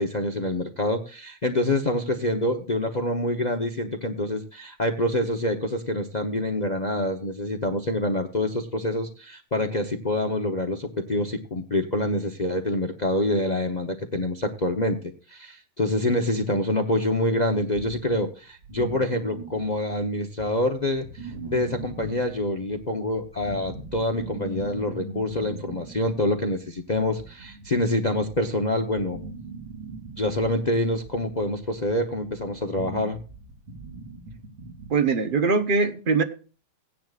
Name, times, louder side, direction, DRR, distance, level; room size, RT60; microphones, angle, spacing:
voice 1, 0.0-15.0 15.3-29.2 30.2-33.2, left 1 dB, 75° left, 5 dB, 0.4 m, -26 dB
Intensive Hunger Moans & Deep-Pitched Grumbles of My Stomach, 17.7-20.1 20.4-34.9, right 2 dB, 90° right, 3.7 m, -40 dB
voice 2, 34.9-36.2, right 4 dB, 40° right, 8 dB, 0.7 m, -22 dB
17.0 x 10.0 x 2.4 m, 0.36 s
omnidirectional pair, 2.3 m